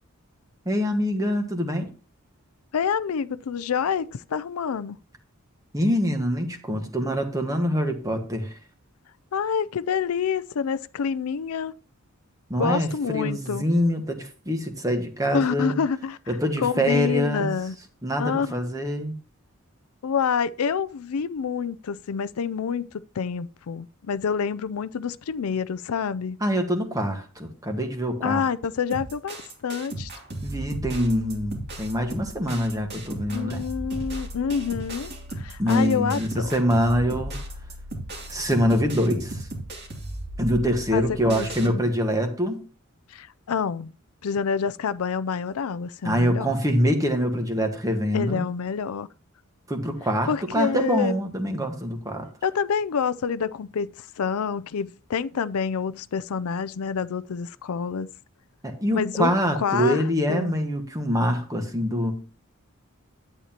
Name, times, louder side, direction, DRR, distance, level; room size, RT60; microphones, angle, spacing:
voice 1, 0.6-1.9 5.7-8.6 12.5-15.8 16.3-17.5 18.0-19.1 26.4-28.4 30.4-33.6 35.6-37.4 38.3-39.4 40.4-42.6 46.0-48.5 49.7-52.3 58.6-62.2, equal, 15° right, 1.4 m, -25 dB
voice 2, 2.7-5.0 9.3-11.7 12.6-13.7 15.3-16.2 16.6-17.8 18.2-18.6 20.0-22.9 23.2-26.4 28.2-29.4 29.6-30.1 33.3-35.1 35.4-36.6 40.9-41.8 43.1-43.9 44.2-46.5 48.1-49.1 50.3-51.2 52.4-58.1 58.9-59.3 59.6-60.6, left 6 dB, 85° left, 0.4 m, -27 dB
sound 1, 28.9-41.7, right 1 dB, 50° right, 2.7 m, -36 dB
11.0 x 8.9 x 2.9 m
head